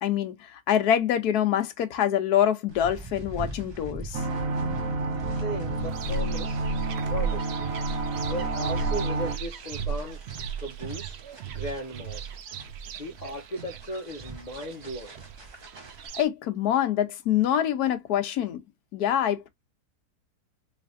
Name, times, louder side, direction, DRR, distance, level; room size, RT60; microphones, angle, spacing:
voice 1, 0.0-4.2 16.1-18.6 18.9-19.5, left 10 dB, 75° left, 1.2 m, -25 dB
sound 1, 2.7-16.1, right 2 dB, 30° right, 0.5 m, -43 dB
sound 2, 4.1-9.4, right 3 dB, 60° right, 1.3 m, -30 dB
voice 2, 5.4-6.6 7.1-7.7 8.3-10.2 10.6-12.3 13.0-15.2, equal, 60° left, 0.4 m, -36 dB
sound 3, 5.8-16.2, right 4 dB, 85° right, 0.5 m, -35 dB
3.3 x 3.3 x 2.5 m
omnidirectional pair, 1.7 m